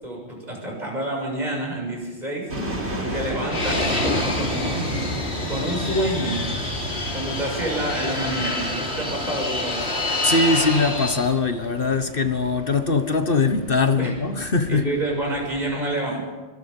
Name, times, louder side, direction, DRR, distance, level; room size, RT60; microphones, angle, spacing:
voice 1, 0.0-6.5 7.1-9.9 14.0-14.1 14.7-16.3, right 1 dB, 40° right, -1 dB, 7.4 m, -28 dB
sound 1, 2.5-15.7, right 1 dB, 80° right, 4.0 m, -35 dB
Fixed-wing aircraft airplane, 3.5-11.3, left 1 dB, 75° left, 3.3 m, -27 dB
voice 2, 10.2-14.8, left 4 dB, 55° left, 8 dB, 1.5 m, -21 dB
26.5 x 24.5 x 5.6 m, 1.3 s
omnidirectional pair, 1.1 m